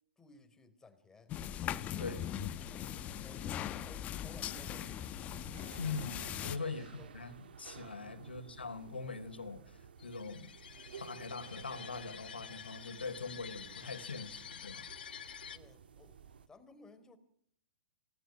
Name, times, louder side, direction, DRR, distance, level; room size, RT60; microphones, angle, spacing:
voice 1, 0.2-1.4 1.9-3.5 3.8-5.0 6.6-7.3 8.2-8.5 15.5-16.2 16.5-17.2, left 3 dB, 10° left, 10 dB, 3.8 m, -59 dB
sound 1, 1.3-6.6, left 11 dB, 25° left, 1.3 m, -40 dB
voice 2, 2.0-2.5 5.8-10.5 11.0-14.9, left 4 dB, 90° left, 11 dB, 3.7 m, -42 dB
sound 2, 2.2-16.5, right 7 dB, 70° right, 1.9 m, -54 dB
sound 3, 10.0-15.6, left 8 dB, 70° left, 2.2 m, -49 dB
28.5 x 19.5 x 6.0 m, 0.64 s
hypercardioid pair, 125°, 5 cm